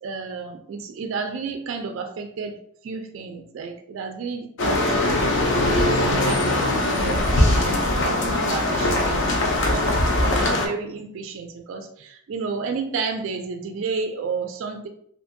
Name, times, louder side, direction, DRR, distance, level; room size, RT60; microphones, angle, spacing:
voice 1, 0.0-14.9, right 5 dB, 60° right, 5 dB, 0.3 m, -32 dB
sound 1, 4.6-10.7, left 1 dB, 55° left, 0.5 m, -21 dB
2.6 x 2.5 x 2.5 m, 0.67 s
head